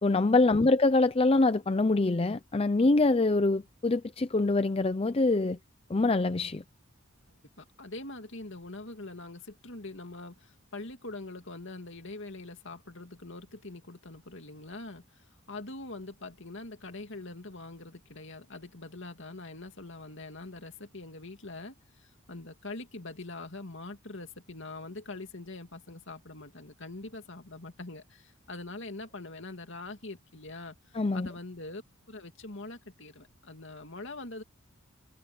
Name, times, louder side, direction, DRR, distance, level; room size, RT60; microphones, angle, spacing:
voice 1, 0.0-5.6 5.9-6.6 30.9-31.3, left 2 dB, 25° left, 0.5 m, -24 dB
voice 2, 7.6-31.8 32.1-34.4, left 2 dB, 60° left, 2.6 m, -43 dB
head